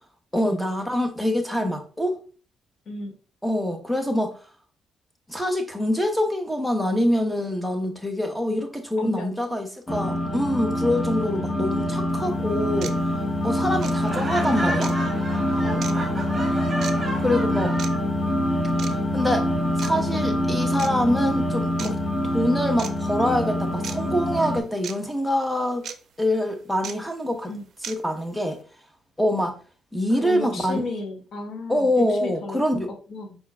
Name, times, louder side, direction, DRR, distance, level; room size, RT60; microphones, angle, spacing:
voice 1, 0.3-2.1 3.4-4.4 5.3-12.9 13.4-14.9 17.2-17.8 18.9-19.5 19.8-22.0 22.2-25.9 26.2-27.5 27.8-28.6 29.2-29.5 29.9-30.8 31.7-32.9, left 1 dB, ahead, 1.0 m, -25 dB
voice 2, 9.0-9.6 11.6-11.7 15.6-16.3 27.5-27.6 30.2-32.6 33.1-33.4, left 2 dB, 60° left, 1.2 m, -34 dB
sound 1, 9.9-24.6, left 1 dB, 25° left, 1.0 m, -25 dB
sound 2, 12.1-12.2 12.8-13.0 13.8-14.0 14.8-15.0 15.8-15.9 16.8-17.0 17.8-17.9 18.8-19.0 19.8-19.9 20.8-20.9 21.8-21.9 22.8-22.9 23.8-24.0 24.8-24.9 25.8-26.0 26.8-26.9 27.8-28.0, right 7 dB, 65° right, 0.5 m, -35 dB
Laughter, 13.9-18.0, right 1 dB, 30° right, 1.8 m, -32 dB
5.3 x 4.3 x 2.3 m
cardioid pair, 90°, 0 cm